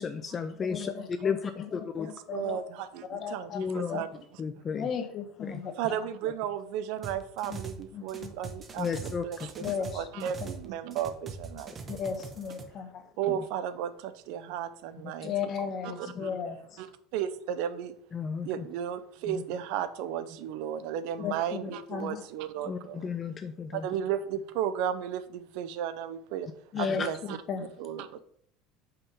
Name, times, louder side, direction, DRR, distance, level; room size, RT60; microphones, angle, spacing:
voice 1, 0.0-2.1 3.5-4.0 4.4-4.9 5.5-5.6 8.8-9.5 13.3-13.4 15.2-15.3 18.1-18.7 19.3-19.4 22.6-23.9 26.7-27.1, left 6 dB, 25° left, 9 dB, 0.4 m, -34 dB
voice 2, 0.7-1.7 2.0-2.6 3.1-3.6 3.9-4.1 4.7-6.0 7.5-7.6 7.9-8.3 9.6-10.5 11.9-13.0 15.2-16.9 21.2-22.2 26.7-27.0 27.5-27.7, left 7 dB, 40° left, 7 dB, 1.0 m, -35 dB
voice 3, 2.0-4.1 5.8-9.7 9.9-12.0 13.2-15.3 16.0-16.3 16.8-16.9 17.1-17.9 18.4-23.1 23.7-26.5 26.8-27.4 27.8-28.2, right 9 dB, 70° right, 12 dB, 0.5 m, -34 dB
sound 1, 7.0-7.8 8.1-10.7 10.9-12.6, right 5 dB, 25° right, 0.8 m, -42 dB
5.6 x 3.6 x 5.5 m, 0.64 s
supercardioid pair, 135°, 0 cm